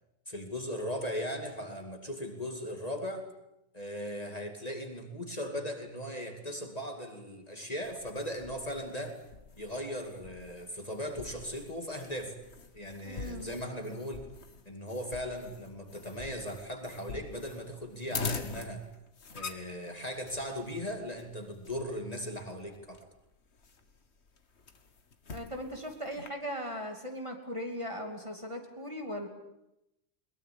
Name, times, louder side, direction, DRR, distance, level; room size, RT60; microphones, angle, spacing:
voice 1, 0.3-3.3 3.7-9.2 9.6-12.3 12.7-14.3 14.7-18.8 19.3-23.0, equal, 30° left, 4 dB, 2.6 m, -38 dB
sound 1, 7.8-26.3, left 4 dB, 60° left, 1.8 m, -45 dB
voice 2, 13.0-13.6 25.3-29.3, equal, 25° right, 3 dB, 2.8 m, -38 dB
22.5 x 21.0 x 8.6 m, 0.87 s
omnidirectional pair, 1.3 m